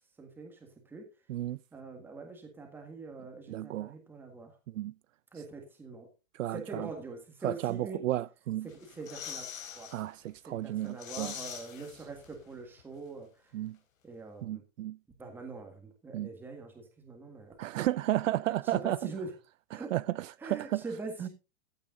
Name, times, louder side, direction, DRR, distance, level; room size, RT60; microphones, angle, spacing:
voice 1, 0.2-1.1 1.7-4.6 5.3-6.1 6.5-8.1 8.6-9.5 9.7-9.9 10.5-13.5 14.0-14.6 15.2-17.9 18.6-19.3 19.7-20.0 20.4-21.3, right 3 dB, 5° right, 1.7 m, -43 dB
voice 2, 3.5-3.9 4.7-4.9 6.4-6.9 7.4-8.7 9.9-11.3 13.5-13.8 14.4-15.0 16.1-16.3 17.6-19.0 19.7-20.8, right 14 dB, 70° right, 0.6 m, -33 dB
sound 1, 8.7-10.0 10.4-10.5 10.8-12.5 12.8-12.9, left 8 dB, 75° left, 3.9 m, -43 dB
15.0 x 8.7 x 3.8 m
supercardioid pair, 175°, 40 cm